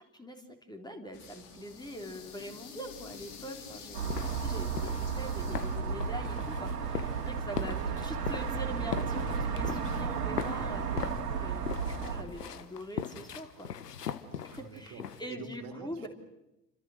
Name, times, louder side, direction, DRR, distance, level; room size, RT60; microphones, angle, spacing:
voice 1, 0.7-6.7 7.3-7.8 8.0-10.8 11.3-11.6 12.0-13.1 13.4-13.7 14.7-16.1, equal, 10° left, 5 dB, 3.6 m, -43 dB
Urinal spacecapsule, 1.1-9.7, left 6 dB, 60° left, 3.9 m, -48 dB
sound 1, 3.9-12.2, right 6 dB, 80° right, 2.7 m, -33 dB
sound 2, 4.0-15.3, left 8 dB, 80° left, 1.4 m, -40 dB
voice 2, 7.5-8.0 14.2-16.1, right 4 dB, 45° right, 6 dB, 3.3 m, -47 dB
29.5 x 26.0 x 6.4 m, 0.95 s
figure-of-eight pair, 65°, 47 cm